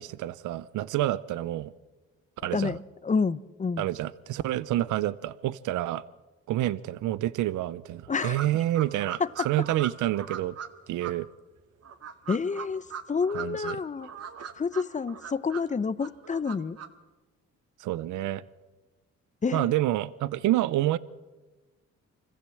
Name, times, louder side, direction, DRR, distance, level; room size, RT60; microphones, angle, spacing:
voice 1, 0.0-1.7 2.4-2.8 3.8-6.0 6.5-10.6 10.9-11.3 13.3-13.8 17.8-18.4 19.5-21.0, right 14 dB, 80° right, 18 dB, 0.7 m, -28 dB
voice 2, 2.5-3.8 8.1-8.4 9.2-9.5 12.3-14.1 14.6-16.8 19.4-19.7, left 5 dB, 25° left, 18 dB, 0.7 m, -29 dB
sound 1, 8.2-10.7 11.0-11.1 11.8-13.7 14.0-15.7 16.0-16.9, right 8 dB, 55° right, 1.9 m, -39 dB
25.0 x 15.5 x 7.7 m, 1.2 s
cardioid pair, 90°, 30 cm